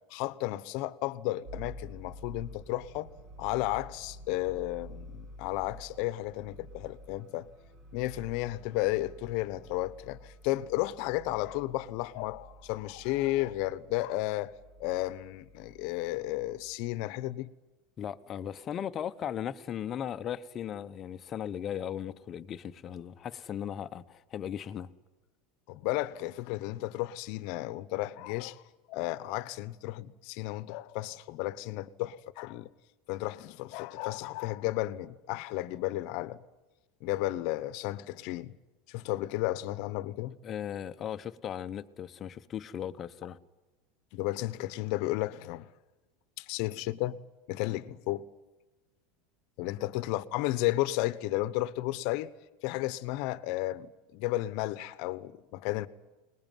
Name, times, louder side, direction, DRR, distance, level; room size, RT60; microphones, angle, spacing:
voice 1, 0.1-3.1 3.4-7.5 7.9-14.5 14.8-17.5 25.7-28.6 28.9-32.7 33.1-36.4 37.0-38.6 38.9-40.4 44.1-45.7 46.4-47.2 47.5-48.3 49.6-52.3 52.6-55.9, left 17 dB, 60° left, 1.1 m, -33 dB
sound 1, 1.4-16.7, equal, 45° right, 6.4 m, -50 dB
voice 2, 18.0-24.9 40.4-43.4, left 9 dB, 30° left, 1.0 m, -37 dB
22.5 x 20.0 x 9.3 m
supercardioid pair, 130°, 0 cm